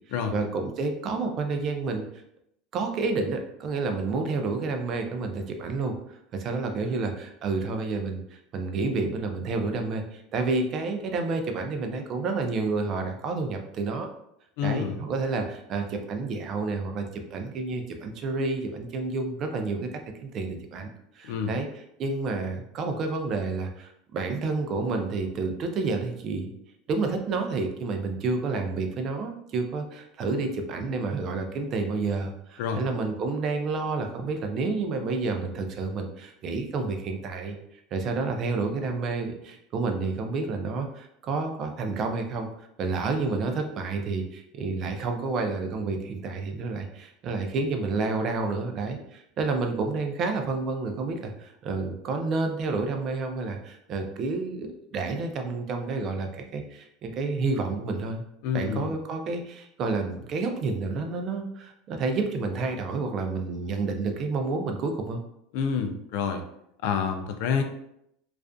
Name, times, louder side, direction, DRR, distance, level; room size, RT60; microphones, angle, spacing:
voice 1, 0.3-2.1 2.7-6.0 6.3-14.1 14.6-19.9 20.2-20.9 21.2-26.5 26.9-37.6 37.9-42.5 42.8-58.2 58.5-65.2, right 3 dB, 40° right, 4 dB, 0.4 m, -29 dB
voice 2, 14.6-15.0 21.2-21.5 32.6-32.8 58.4-58.9 65.5-66.4 66.8-67.6, left 7 dB, 70° left, 6 dB, 0.3 m, -28 dB
2.4 x 2.4 x 2.2 m, 0.76 s
supercardioid pair, 135°, 0 cm